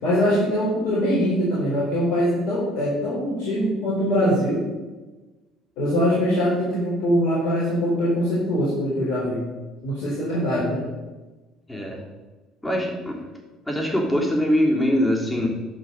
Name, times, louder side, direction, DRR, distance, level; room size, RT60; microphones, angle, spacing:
voice 1, 0.0-4.6 5.8-9.4 9.8-10.8, equal, 60° left, -8 dB, 4.1 m, -22 dB
voice 2, 11.7-12.1 12.6-13.2 13.6-15.5, equal, 10° left, -1 dB, 3.4 m, -22 dB
11.5 x 5.5 x 6.6 m, 1.2 s
hypercardioid pair, 60°, 0 cm